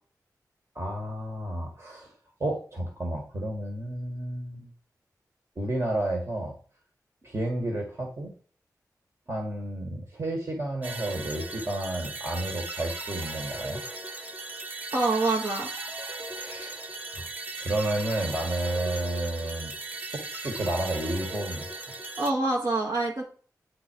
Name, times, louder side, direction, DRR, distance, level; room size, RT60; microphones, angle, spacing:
voice 1, 0.8-2.1 2.4-4.7 5.6-6.6 7.2-8.3 9.3-13.8 16.4-17.3 17.6-21.7, right 1 dB, 45° right, 1 dB, 1.8 m, -31 dB
sound 1, 10.8-22.3, right 2 dB, 25° right, 1.0 m, -37 dB
voice 2, 14.9-15.7 22.2-23.2, right 2 dB, 70° right, -1 dB, 1.6 m, -26 dB
9.6 x 3.9 x 4.6 m, 0.43 s
wide cardioid pair, 90°, 7 cm